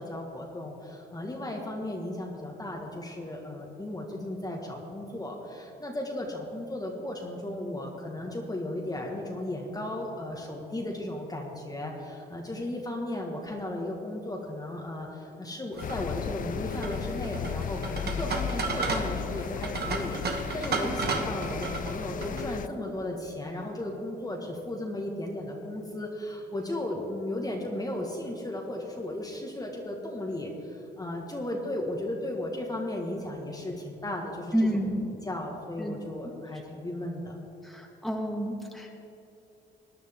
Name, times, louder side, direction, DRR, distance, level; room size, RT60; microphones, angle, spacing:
voice 1, 0.0-34.8 35.2-37.4, left 1 dB, 20° left, -1 dB, 1.6 m, -35 dB
sound 1, 15.7-22.5, right 4 dB, 55° right, 1.5 m, -34 dB
sound 2, 15.8-22.7, left 9 dB, 45° left, 0.4 m, -35 dB
voice 2, 34.5-35.1 35.8-35.9 37.6-38.9, equal, ahead, 0 dB, 1.7 m, -29 dB
18.5 x 10.0 x 3.7 m, 2.9 s
cardioid pair, 90°, 20 cm